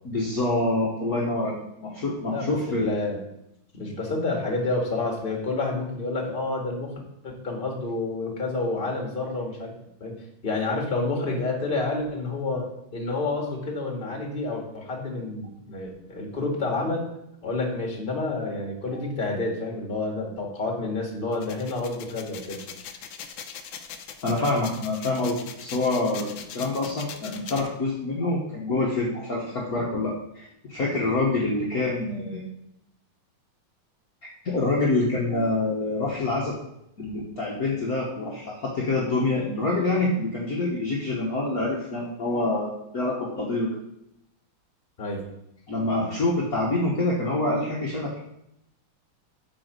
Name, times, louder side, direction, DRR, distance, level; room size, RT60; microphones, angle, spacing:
voice 1, 0.0-2.9 18.9-19.0 24.2-32.4 34.4-36.5 37.0-43.7 45.7-48.2, left 2 dB, 50° left, -4 dB, 1.6 m, -26 dB
voice 2, 2.3-3.2 3.7-6.9 7.2-9.7 10.0-10.1 10.4-12.7 12.9-17.0 17.4-22.6 45.0-45.3, left 3 dB, 25° left, 1 dB, 1.9 m, -29 dB
sound 1, 21.3-27.7, left 8 dB, 70° left, 1.4 m, -40 dB
8.6 x 5.0 x 6.6 m, 0.81 s
omnidirectional pair, 2.3 m